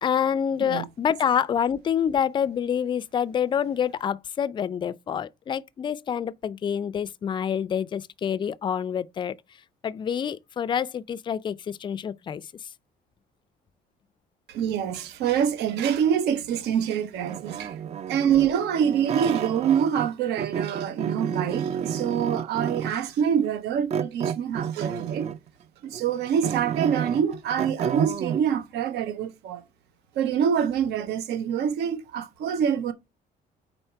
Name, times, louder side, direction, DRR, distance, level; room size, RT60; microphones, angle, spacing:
voice 1, 0.0-9.4 9.8-12.4, left 8 dB, 30° left, 0.3 m, -27 dB
voice 2, 14.5-17.7 18.1-25.3 25.8-29.6 30.2-32.9, right 8 dB, 80° right, 1.0 m, -25 dB
sound 1, 17.2-20.1 20.4-23.1 23.9-25.5 25.9-28.4, right 8 dB, 40° right, 0.5 m, -30 dB
4.4 x 4.1 x 5.5 m
cardioid pair, 110°, 17 cm